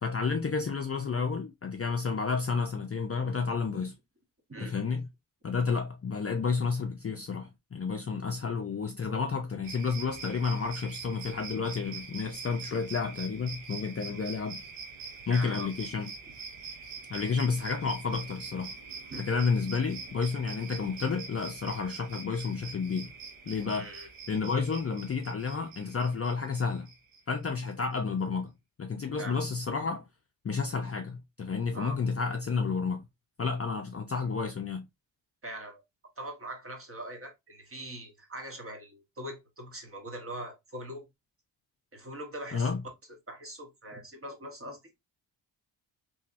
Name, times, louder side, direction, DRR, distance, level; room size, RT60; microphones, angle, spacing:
voice 1, 0.0-3.9 4.6-5.0 5.4-14.6 15.3-16.1 17.1-18.7 19.2-23.1 23.5-23.9 24.3-26.9 27.3-28.5 28.8-30.1 30.4-33.0 33.4-34.9 42.5-42.8, left 5 dB, 30° left, 0.5 m, -31 dB
sound 1, 9.6-27.7, right 5 dB, 90° right, 1.0 m, -44 dB
voice 2, 15.3-15.7 19.1-19.2 23.7-24.1 29.2-29.4 31.7-32.0 35.4-35.8 36.2-41.1 41.9-42.8 43.3-44.8, right 1 dB, 30° right, 1.2 m, -42 dB
3.1 x 2.7 x 2.5 m
cardioid pair, 60°, 47 cm